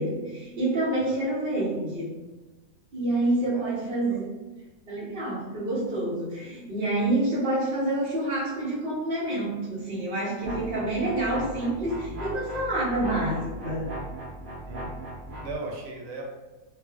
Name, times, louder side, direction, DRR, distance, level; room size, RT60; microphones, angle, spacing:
voice 1, 0.0-2.1 2.9-4.3 4.9-13.9, right 1 dB, 40° right, -7 dB, 0.9 m, -28 dB
sound 1, 10.4-15.6, equal, 65° right, 0.5 m, -37 dB
voice 2, 15.4-16.2, right 3 dB, 85° right, 0 dB, 1.2 m, -37 dB
2.6 x 2.5 x 2.3 m, 1.2 s
omnidirectional pair, 1.8 m